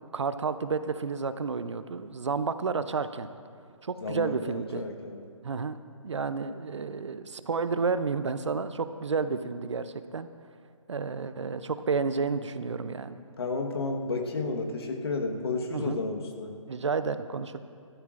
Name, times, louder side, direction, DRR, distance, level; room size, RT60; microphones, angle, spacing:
voice 1, 0.1-3.3 3.8-4.9 5.4-5.8 6.0-10.3 10.9-13.2 15.7-16.0 16.7-17.6, right 5 dB, 60° right, 12 dB, 0.6 m, -31 dB
voice 2, 4.0-5.2 13.4-16.6, left 3 dB, 50° left, 3 dB, 1.3 m, -32 dB
20.0 x 13.0 x 2.5 m, 2.3 s
hypercardioid pair, 165°, 17 cm